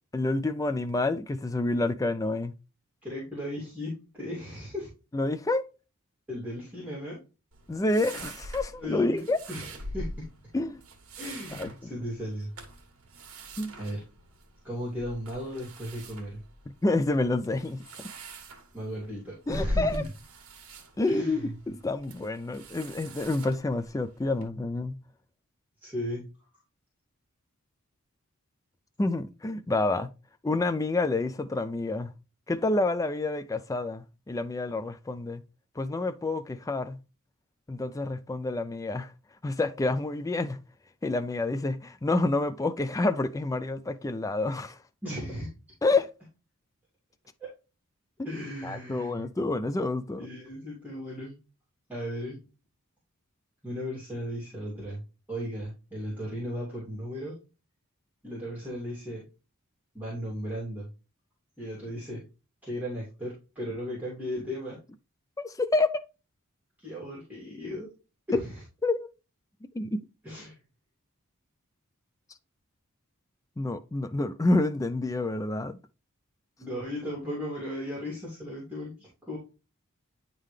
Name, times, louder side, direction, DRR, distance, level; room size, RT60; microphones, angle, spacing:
voice 1, 0.1-2.5 5.1-5.7 7.7-9.4 10.5-10.8 11.5-11.9 13.6-13.7 16.8-17.8 19.5-20.0 21.0-25.0 29.0-30.1 30.4-32.1 32.5-35.4 35.8-37.0 37.7-39.1 39.4-40.6 41.0-44.8 45.8-46.1 48.2-48.3 48.6-50.3 65.4-66.0 68.3-68.4 68.8-69.1 69.7-70.0 73.6-75.8, left 2 dB, 15° left, 0.4 m, -28 dB
voice 2, 3.0-4.9 6.3-7.2 8.0-8.3 8.8-10.2 11.2-12.5 13.8-14.0 14.6-16.4 18.7-20.1 21.1-21.6 25.8-26.3 45.0-45.5 47.4-47.5 48.2-49.3 50.2-51.4 51.9-52.4 53.6-55.0 55.3-57.4 58.2-59.2 59.9-60.9 61.6-62.2 62.6-64.8 66.8-67.9 68.3-68.6 70.2-70.6 76.6-79.4, equal, 10° right, 2.8 m, -36 dB
sound 1, 7.5-24.5, equal, 75° right, 1.6 m, -42 dB
9.9 x 3.8 x 3.2 m
head